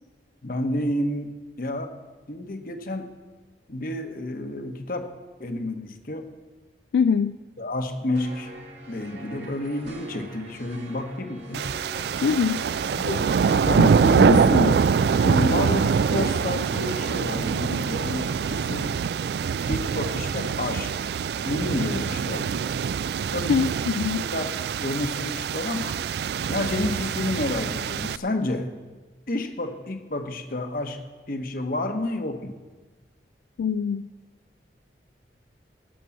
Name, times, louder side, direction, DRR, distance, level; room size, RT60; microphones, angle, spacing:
voice 1, 0.4-1.9 2.3-3.1 3.7-5.1 5.4-6.3 7.6-8.5 8.9-11.6 12.9-13.3 13.6-14.8 15.2-18.9 19.7-21.1 21.4-22.5 23.3-23.8 24.2-25.9 26.5-28.7 29.3-31.0 31.3-32.5, left 2 dB, 55° left, 7 dB, 1.2 m, -29 dB
voice 2, 6.9-7.4 12.2-12.6 23.5-24.3 33.6-34.1, left 6 dB, 80° left, 13 dB, 0.3 m, -23 dB
sound 1, 8.1-18.4, right 2 dB, 85° right, 2.4 m, -43 dB
sound 2, 11.5-28.2, right 6 dB, 65° right, 0.3 m, -24 dB
17.5 x 6.2 x 7.2 m, 1.3 s
head